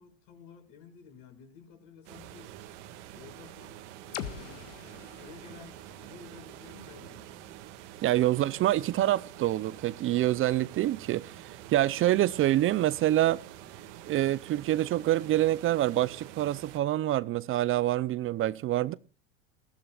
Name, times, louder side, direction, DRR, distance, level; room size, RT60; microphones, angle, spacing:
voice 1, 0.0-2.6 3.1-4.7 5.0-7.6 8.3-8.5, left 6 dB, 65° left, 6.9 m, -52 dB
sound 1, 2.0-16.8, right 12 dB, 75° right, 2.0 m, -47 dB
sound 2, 4.1-8.0, left 10 dB, 85° left, 1.7 m, -45 dB
voice 2, 8.0-13.4 14.1-18.9, right 14 dB, 35° right, 0.6 m, -26 dB
20.5 x 15.5 x 2.4 m
supercardioid pair, 120°, 36 cm